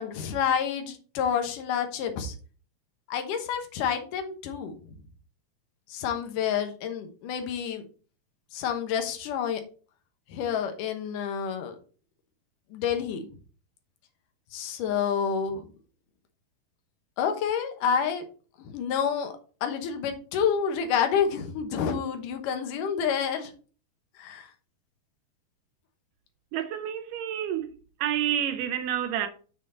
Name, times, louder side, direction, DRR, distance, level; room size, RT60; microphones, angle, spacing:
voice 1, 0.0-2.3 3.1-5.0 5.9-7.8 8.5-9.6 10.3-11.8 12.7-13.3 14.5-15.7 17.2-18.3 18.6-19.3 19.6-23.5 24.2-24.5, left 7 dB, 70° left, 2.5 m, -28 dB
voice 2, 26.5-27.7 28.0-29.3, right 10 dB, 75° right, 2.1 m, -29 dB
7.1 x 6.2 x 3.9 m
omnidirectional pair, 4.3 m